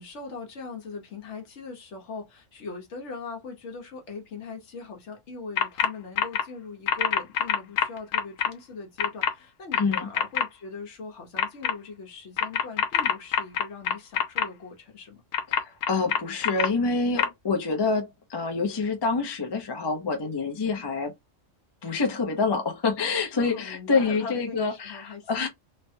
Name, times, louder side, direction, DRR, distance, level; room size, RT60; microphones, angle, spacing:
voice 1, 0.0-15.2 23.3-25.5, left 4 dB, 65° left, 1.2 m, -40 dB
sound 1, 5.6-5.9 6.2-6.4 6.9-8.5 9.0-9.3 9.7-10.4 11.4-11.7 12.4-14.4 15.3-16.7 17.2-17.3, left 8 dB, 85° left, 1.0 m, -24 dB
voice 2, 9.8-10.1 15.5-21.1 21.8-25.5, left 4 dB, 30° left, 0.5 m, -27 dB
3.2 x 2.1 x 2.6 m
omnidirectional pair, 1.3 m